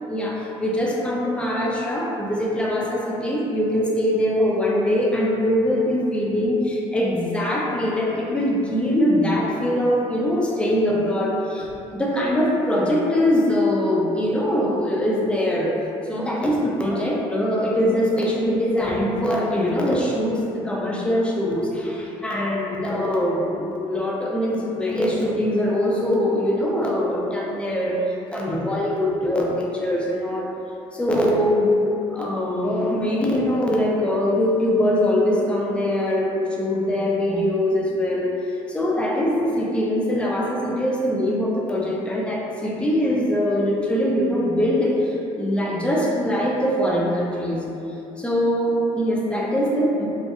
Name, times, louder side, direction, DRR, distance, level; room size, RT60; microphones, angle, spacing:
voice 1, 0.1-15.7 16.1-30.5 30.9-31.8 32.1-38.3 38.7-47.6 48.2-50.1, left 1 dB, 10° left, -3 dB, 0.4 m, -22 dB
2.6 x 2.0 x 2.3 m, 2.8 s
supercardioid pair, 85°, 13 cm